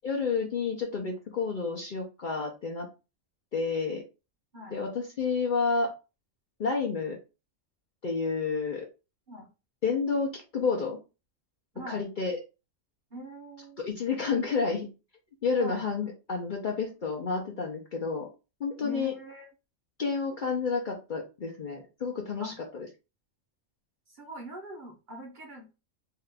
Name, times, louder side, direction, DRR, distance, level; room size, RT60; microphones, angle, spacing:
voice 1, 0.0-2.9 3.5-4.0 4.7-5.9 6.6-7.2 8.0-8.9 9.8-11.0 11.9-12.4 13.8-14.9 15.4-18.3 18.6-19.1 20.0-22.9, left 5 dB, 50° left, -1 dB, 0.6 m, -30 dB
voice 2, 13.1-13.8 15.6-15.8 18.8-19.5 22.4-22.5 24.1-25.8, right 1 dB, 45° right, 0 dB, 0.8 m, -42 dB
2.8 x 2.4 x 3.3 m, 0.29 s
omnidirectional pair, 1.3 m